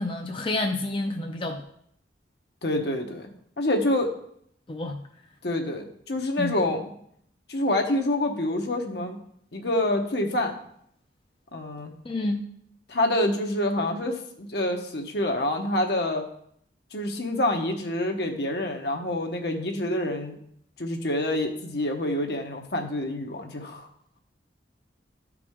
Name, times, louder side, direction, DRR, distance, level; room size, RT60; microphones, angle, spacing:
voice 1, 0.0-1.6 4.7-5.0 6.4-6.5 12.0-12.4, left 2 dB, 30° left, 2 dB, 0.5 m, -29 dB
voice 2, 2.6-3.3 3.6-4.1 5.4-6.8 7.5-9.2 9.5-10.5 11.5-11.9 12.9-16.2 16.9-20.4 20.8-23.9, left 1 dB, 60° left, 3 dB, 1.0 m, -27 dB
13.0 x 4.8 x 3.6 m, 0.68 s
head